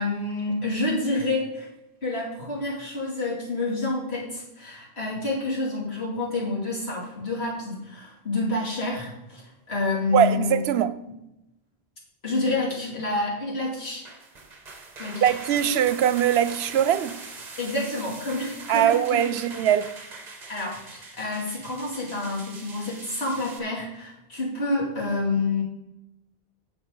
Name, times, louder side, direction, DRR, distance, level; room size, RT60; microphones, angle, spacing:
voice 1, 0.0-1.7 2.0-10.6 12.2-14.0 15.0-15.3 17.6-19.4 20.5-25.6, left 2 dB, 90° left, 3.1 m, -28 dB
voice 2, 10.1-10.9 15.2-17.2 18.7-19.9, right 10 dB, 85° right, 0.8 m, -21 dB
sound 1, 13.9-23.6, right 3 dB, 45° right, 1.1 m, -42 dB
10.5 x 7.2 x 3.9 m
omnidirectional pair, 1.0 m